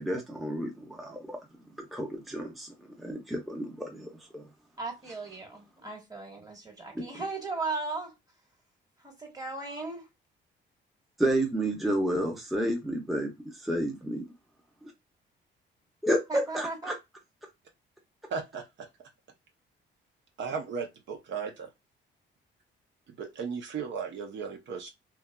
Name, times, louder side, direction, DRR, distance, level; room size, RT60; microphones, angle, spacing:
voice 1, 0.0-1.4 1.8-4.1 4.3-4.5 6.9-7.0 11.2-13.3 13.7-14.2 14.8-14.9 16.0-16.9, right 1 dB, ahead, 0.6 m, -30 dB
voice 2, 4.8-8.1 9.0-10.1 16.3-17.0, right 3 dB, 20° right, 1.3 m, -37 dB
voice 3, 18.3-18.9 20.4-21.7 23.1-24.9, right 5 dB, 65° right, 0.6 m, -36 dB
2.9 x 2.3 x 2.2 m
cardioid pair, 90°, 20 cm